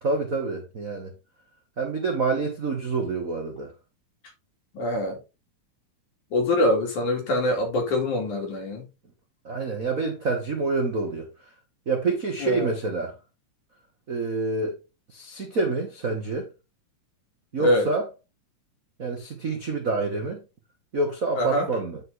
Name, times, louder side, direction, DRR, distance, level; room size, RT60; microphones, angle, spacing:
voice 1, 0.0-1.1 1.8-3.7 9.4-11.3 11.9-13.1 14.1-14.8 15.1-16.5 17.5-18.1 19.0-20.4 20.9-22.0, right 3 dB, 50° right, 1.0 m, -27 dB
voice 2, 4.7-5.2 6.3-8.9 12.4-12.7 17.6-17.9 21.4-21.7, left 1 dB, 70° left, 4.2 m, -24 dB
9.7 x 5.2 x 3.9 m
omnidirectional pair, 3.7 m